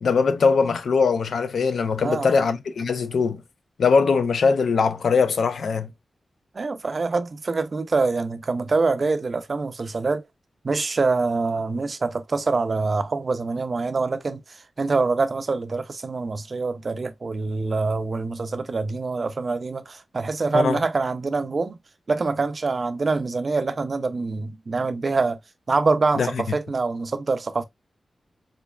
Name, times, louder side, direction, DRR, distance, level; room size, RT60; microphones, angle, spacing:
voice 1, 0.0-3.4 3.8-5.9 20.5-20.8 26.2-26.6, left 5 dB, 85° left, 0.5 m, -21 dB
voice 2, 2.0-2.5 6.5-10.2 10.6-21.8 22.1-25.4 25.7-27.6, right 3 dB, 45° right, 0.5 m, -25 dB
3.8 x 3.2 x 2.2 m
wide cardioid pair, 120°, 0 cm